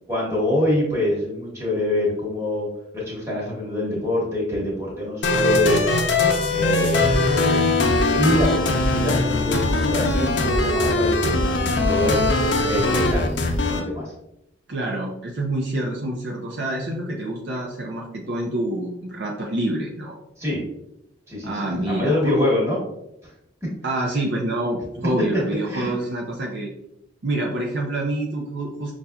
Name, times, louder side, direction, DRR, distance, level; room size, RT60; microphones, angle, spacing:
voice 1, 0.1-2.7 2.9-5.8 6.5-7.2 8.1-11.4 11.7-12.2 12.6-13.3 13.7-14.1 20.4-20.6 21.3-21.5 21.9-22.8 23.6-23.7 25.7-25.9, left 1 dB, 15° right, -5 dB, 1.2 m, -24 dB
sound 1, 5.2-13.8, left 2 dB, 65° left, 0.5 m, -21 dB
voice 2, 14.7-20.2 21.4-22.5 23.8-26.7 27.2-28.9, right 1 dB, 60° right, -1 dB, 0.5 m, -27 dB
5.5 x 2.4 x 2.2 m, 0.81 s
head